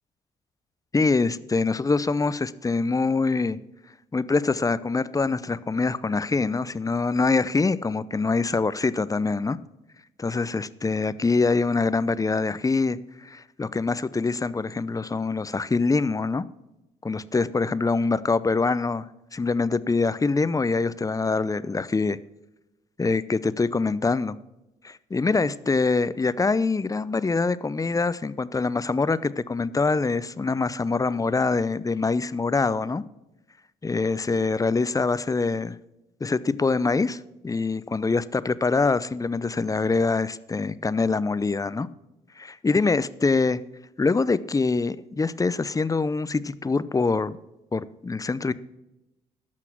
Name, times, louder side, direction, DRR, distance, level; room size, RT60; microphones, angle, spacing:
voice 1, 0.9-3.6 4.1-9.6 10.2-16.4 17.0-19.1 19.3-22.2 23.0-24.4 24.8-33.0 33.8-35.8 36.2-37.2 37.4-41.9 42.4-43.6 44.0-47.4 47.7-48.5, left 4 dB, 20° left, 17 dB, 0.6 m, -24 dB
13.5 x 5.9 x 6.0 m, 0.96 s
hypercardioid pair, 50°, 17 cm